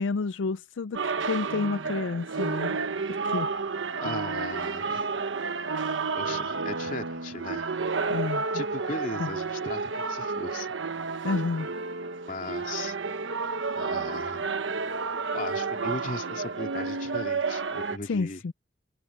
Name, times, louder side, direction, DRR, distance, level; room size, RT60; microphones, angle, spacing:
voice 1, 0.0-2.8 3.1-3.5 8.1-8.6 9.2-9.3 11.2-11.7 18.1-18.5, left 4 dB, 85° left, 0.5 m, -30 dB
sound 1, 0.9-18.0, right 4 dB, 90° right, 1.0 m, -31 dB
voice 2, 4.0-5.1 6.1-7.7 8.5-10.7 11.2-11.3 12.3-13.0 13.8-14.5 15.3-18.4, left 2 dB, 45° left, 3.1 m, -37 dB
head